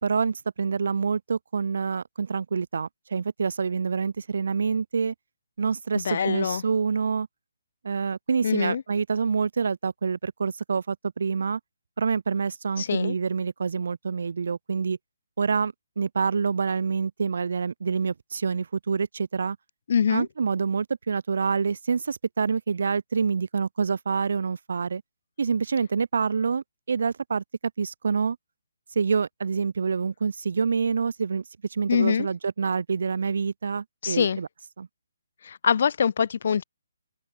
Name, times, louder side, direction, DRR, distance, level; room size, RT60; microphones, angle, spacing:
voice 1, 0.0-5.1 5.6-7.3 7.8-11.6 12.0-15.0 15.4-19.6 20.1-25.0 25.4-27.4 27.8-28.4 28.9-31.4 31.7-34.5 34.8-34.9, right 5 dB, 60° right, 2.5 m, -27 dB
voice 2, 5.9-6.6 8.4-8.8 12.8-13.1 19.9-20.3 31.9-32.3 34.0-34.4 35.4-36.6, left 7 dB, 45° left, 3.0 m, -24 dB
open air
hypercardioid pair, 170°, 0 cm